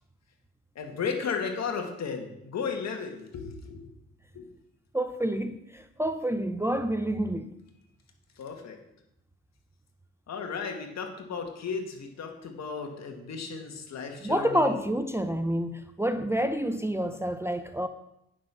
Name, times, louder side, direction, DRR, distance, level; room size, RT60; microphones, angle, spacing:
voice 1, 0.8-3.8 4.3-4.4 8.4-8.8 10.3-14.7, left 5 dB, 60° left, 2.1 m, -34 dB
voice 2, 4.9-7.5 14.2-17.9, right 1 dB, 10° right, 0.6 m, -28 dB
9.4 x 6.5 x 6.1 m
cardioid pair, 90°, 30 cm